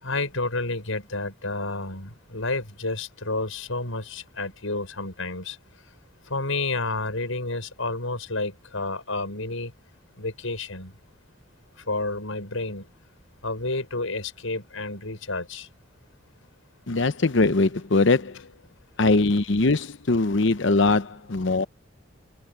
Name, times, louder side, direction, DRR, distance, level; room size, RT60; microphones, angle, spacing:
voice 1, 0.0-5.6 6.3-9.7 10.2-10.9 11.9-12.9 13.4-15.7, left 2 dB, 80° left, 6.3 m, -30 dB
voice 2, 16.9-18.5 19.0-21.6, left 3 dB, 65° left, 0.8 m, -21 dB
head